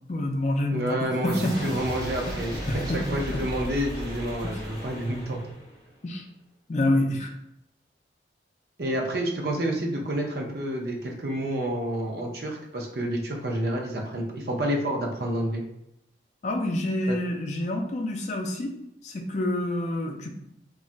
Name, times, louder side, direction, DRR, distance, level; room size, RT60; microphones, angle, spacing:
voice 1, 0.1-1.7 2.7-3.4 6.0-6.3 6.7-7.3 16.4-18.7 19.0-20.3, left 1 dB, 40° left, 2 dB, 0.4 m, -27 dB
voice 2, 0.7-5.4 8.8-15.6 17.1-17.2, right 1 dB, 60° right, 0 dB, 0.6 m, -29 dB
sound 1, 1.2-5.9, equal, 20° right, 0.7 m, -36 dB
2.3 x 2.1 x 3.8 m, 0.80 s
head